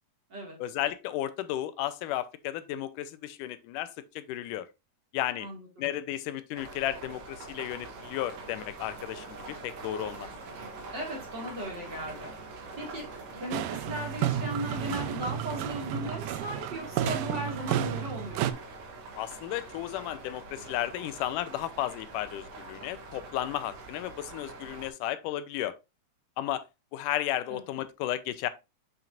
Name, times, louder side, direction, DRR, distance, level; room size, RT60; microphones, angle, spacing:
voice 1, 0.6-4.7 5.1-5.5 5.8-9.4 9.6-10.3 19.2-25.8 26.4-26.6 26.9-28.5, left 13 dB, 85° left, 2.1 m, -33 dB
voice 2, 5.4-5.9 10.9-12.3 12.8-13.0 13.3-18.6 27.5-27.6, equal, 35° right, 2.3 m, -37 dB
sound 1, 6.5-24.9, right 3 dB, 60° right, 2.4 m, -44 dB
sound 2, 13.5-18.5, right 12 dB, 90° right, 2.2 m, -32 dB
7.2 x 5.9 x 2.5 m
omnidirectional pair, 3.7 m